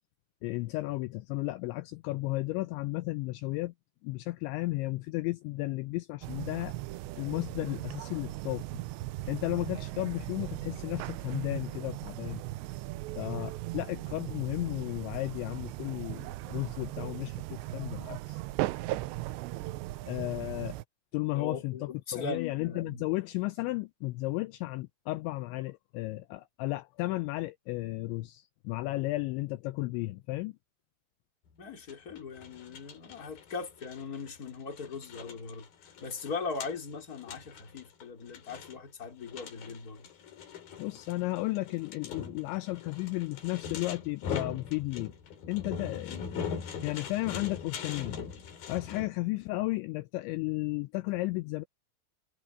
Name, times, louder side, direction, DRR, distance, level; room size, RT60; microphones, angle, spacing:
voice 1, 0.4-3.7 4.0-6.7 7.2-8.7 9.3-12.4 13.2-18.4 20.1-20.8 21.1-30.6 40.8-45.1 45.5-46.2 46.8-48.2 48.7-51.6, left 20 dB, 80° left, 2.7 m, -34 dB
sound 1, 6.2-20.8, right 17 dB, 85° right, 2.6 m, -38 dB
voice 2, 21.3-23.0 31.6-35.7 36.0-40.0 46.1-46.3, left 4 dB, 20° left, 3.1 m, -39 dB
sound 2, 31.9-49.1, left 6 dB, 50° left, 4.1 m, -42 dB
omnidirectional pair, 5.7 m